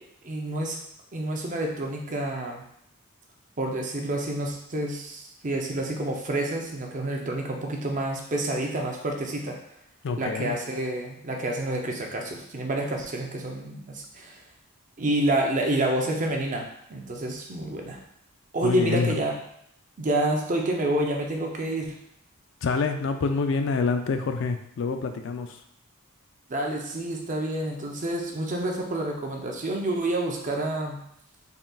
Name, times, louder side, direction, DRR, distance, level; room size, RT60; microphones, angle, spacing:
voice 1, 0.2-0.8 1.1-2.6 3.6-9.6 10.2-14.4 15.0-18.0 18.5-19.4 20.0-22.0 26.5-31.0, right 1 dB, 35° right, 1 dB, 0.6 m, -28 dB
voice 2, 10.0-10.6 18.6-19.2 22.6-25.6, left 4 dB, 55° left, 6 dB, 0.3 m, -27 dB
3.9 x 3.8 x 2.3 m, 0.72 s
head